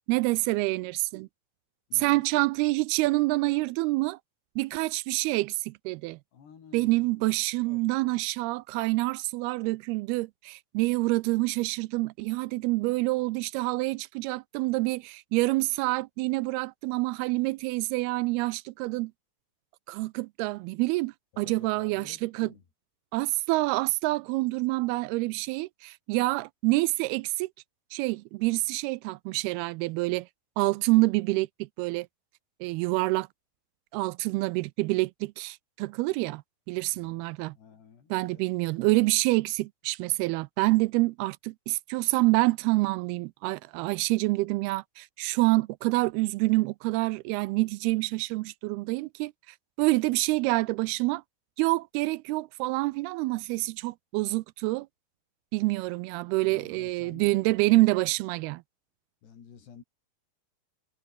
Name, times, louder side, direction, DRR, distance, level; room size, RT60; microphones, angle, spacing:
voice 1, 0.1-1.3 2.0-4.2 4.6-6.2 6.7-19.1 19.9-22.5 23.1-27.5 27.9-30.3 30.6-32.1 32.6-33.3 33.9-36.4 36.7-37.5 38.1-51.2 51.6-54.9 55.5-58.6, right 22 dB, 80° right, 2.4 m, -27 dB
voice 2, 1.9-2.2 6.3-7.3 7.7-7.8 21.3-22.6 32.6-32.9 36.9-37.2 37.5-38.4 56.4-57.8 59.2-59.8, left 7 dB, 90° left, 6.4 m, -52 dB
omnidirectional pair, 4.7 m